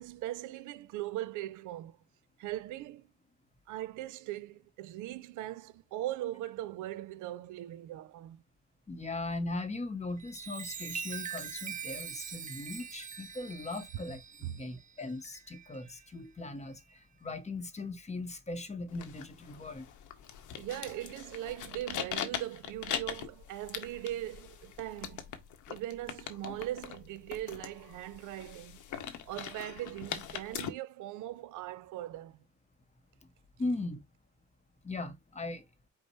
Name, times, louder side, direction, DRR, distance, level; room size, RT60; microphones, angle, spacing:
voice 1, 0.0-2.0 2.4-3.1 3.7-8.4 14.4-14.7 20.6-25.3 25.7-28.8 29.3-32.4, right 14 dB, 80° right, 0.5 m, -40 dB
voice 2, 8.9-19.9 33.6-34.0 34.8-35.7, left 2 dB, 25° left, 0.8 m, -39 dB
Chime, 10.1-16.1 16.6-16.9, right 7 dB, 25° right, 0.5 m, -43 dB
sound 1, 18.9-30.7, left 9 dB, 80° left, 0.8 m, -41 dB
5.1 x 2.0 x 4.3 m
cardioid pair, 90°, 30 cm